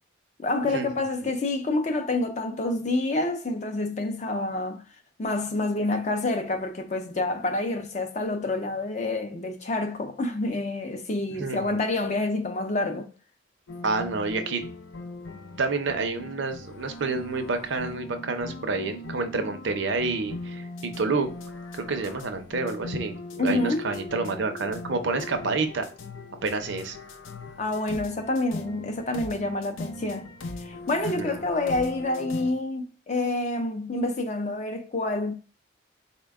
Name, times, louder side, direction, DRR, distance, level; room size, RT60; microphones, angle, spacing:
voice 1, 0.4-4.8 5.2-13.1 23.4-23.8 27.6-30.3 30.6-35.3, left 2 dB, 40° left, 0.5 m, -28 dB
voice 2, 11.4-11.8 13.8-14.6 15.6-21.3 21.7-25.8 26.4-27.0 31.2-31.4, right 3 dB, 75° right, 0.6 m, -29 dB
sound 1, 13.7-32.5, left 2 dB, 85° left, 0.5 m, -39 dB
4.1 x 2.2 x 3.4 m
head